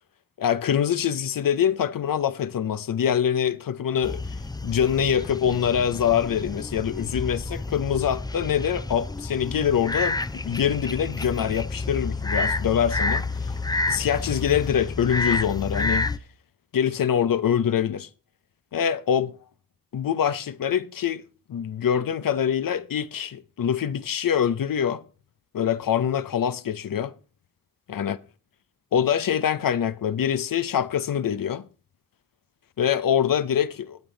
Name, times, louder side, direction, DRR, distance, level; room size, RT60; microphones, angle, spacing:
voice 1, 0.4-4.2 4.6-13.5 13.9-16.1 16.7-18.1 18.7-19.3 19.9-21.2 21.5-25.0 25.5-27.1 27.9-28.2 28.9-31.6 32.8-34.0, left 8 dB, 80° left, 0.6 m, -24 dB
sound 1, 4.0-16.2, left 3 dB, 10° left, 0.5 m, -29 dB
20.0 x 7.0 x 3.8 m
cardioid pair, 50°, 33 cm